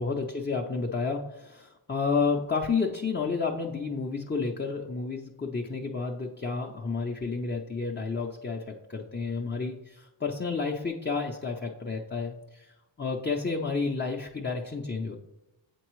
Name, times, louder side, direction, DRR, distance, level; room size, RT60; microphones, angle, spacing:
voice 1, 0.0-15.2, left 4 dB, 25° left, 1 dB, 0.5 m, -31 dB
7.1 x 4.5 x 3.0 m, 0.97 s
cardioid pair, 45°, 47 cm